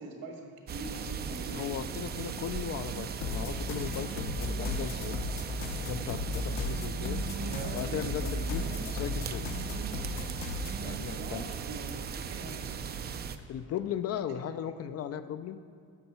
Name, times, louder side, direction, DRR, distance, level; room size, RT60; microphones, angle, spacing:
voice 1, 0.0-1.8 7.3-8.8 10.7-12.8 14.3-14.5, right 2 dB, 75° right, 1 dB, 1.8 m, -43 dB
sound 1, 0.7-13.4, right 7 dB, 30° right, 0.4 m, -37 dB
voice 2, 1.5-5.2 5.8-7.2 7.7-9.4 10.8-11.5 13.5-15.6, left 9 dB, 45° left, 11 dB, 0.4 m, -37 dB
sound 2, 3.2-10.8, left 3 dB, 70° left, 1.0 m, -36 dB
11.0 x 6.7 x 4.3 m, 2.2 s
cardioid pair, 120°, 35 cm